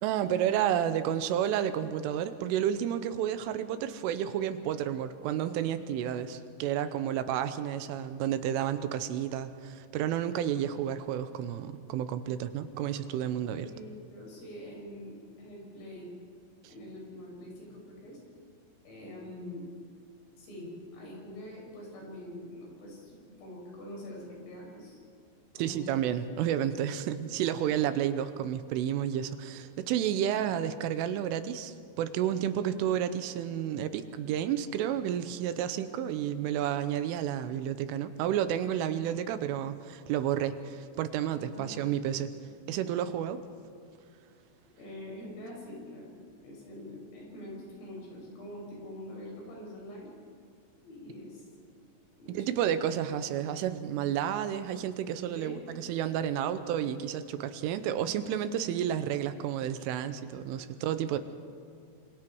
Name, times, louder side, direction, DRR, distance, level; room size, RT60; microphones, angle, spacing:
voice 1, 0.0-13.7 25.6-42.3 42.7-43.4 52.3-61.2, right 10 dB, 80° right, 11 dB, 3.3 m, -31 dB
voice 2, 13.6-16.1 16.7-18.2 18.9-19.7 20.4-25.0 25.5-25.9 41.4-42.0 44.8-46.1 46.4-50.1 50.8-51.5 52.2-52.6 55.3-55.6 56.3-56.5 60.7-60.8, left 1 dB, 80° left, -2 dB, 9.3 m, -45 dB
26.5 x 26.5 x 4.7 m, 2.2 s
omnidirectional pair, 5.8 m